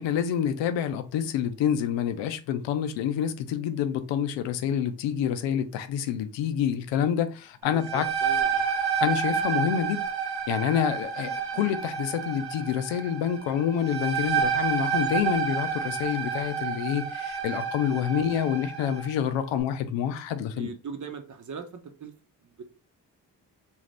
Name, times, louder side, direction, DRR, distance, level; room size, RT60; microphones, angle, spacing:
voice 1, 0.0-8.1 9.0-10.1 10.5-20.7, left 9 dB, 85° left, 0.5 m, -27 dB
sound 1, 7.6-19.1, right 7 dB, 70° right, 1.4 m, -29 dB
voice 2, 7.7-8.7 20.5-22.1 22.4-22.6, right 5 dB, 45° right, 0.9 m, -40 dB
2.7 x 2.5 x 3.3 m
supercardioid pair, 40°, 43 cm